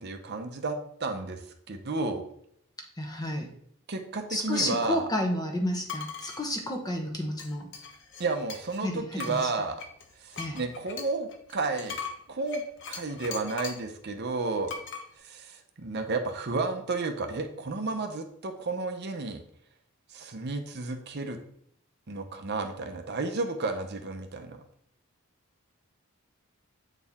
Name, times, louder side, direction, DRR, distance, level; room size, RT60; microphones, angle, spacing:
voice 1, 0.0-1.4 1.7-2.2 3.9-5.1 8.2-9.8 10.2-12.0 12.3-12.6 12.9-14.7 15.2-19.4 20.1-21.4 22.1-24.6, right 3 dB, 50° right, 6 dB, 0.7 m, -32 dB
voice 2, 3.0-3.5 4.3-7.7 8.8-9.4 10.4-10.6, left 1 dB, 15° left, 3 dB, 0.9 m, -31 dB
sound 1, 5.9-6.4 7.4-8.8 9.2-13.9 14.7-15.1, left 5 dB, 55° left, 0.9 m, -40 dB
8.0 x 4.4 x 3.6 m, 0.70 s
head